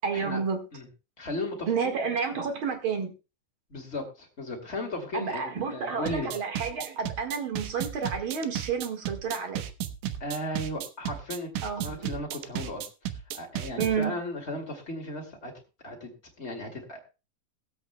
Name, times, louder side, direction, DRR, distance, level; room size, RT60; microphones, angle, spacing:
voice 1, 0.0-0.6 1.7-3.1 5.1-9.6 11.6-12.0 13.8-14.1, right 6 dB, 50° right, 2.1 m, -30 dB
voice 2, 1.2-2.0 2.3-2.4 3.7-6.3 10.2-12.9 13.3-15.5 15.8-16.1 16.4-17.0, left 1 dB, 25° left, 2.0 m, -35 dB
sound 1, 6.1-14.0, right 11 dB, 85° right, 2.3 m, -34 dB
23.0 x 8.0 x 2.2 m
omnidirectional pair, 3.5 m